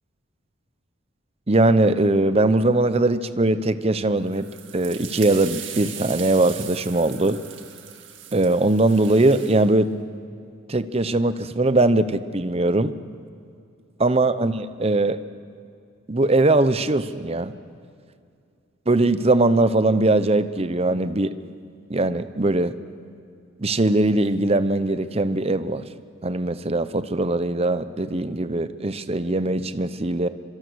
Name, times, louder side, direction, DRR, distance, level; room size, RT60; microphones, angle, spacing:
voice 1, 1.5-4.5 4.7-7.4 8.3-9.9 10.7-12.9 14.0-15.2 16.1-17.5 18.9-21.3 21.9-22.7 23.6-25.8 26.2-30.3, right 2 dB, 30° right, 12 dB, 0.8 m, -21 dB
sound 1, 4.3-9.7, right 10 dB, 70° right, 2.1 m, -39 dB
25.5 x 23.5 x 6.4 m, 2.4 s
head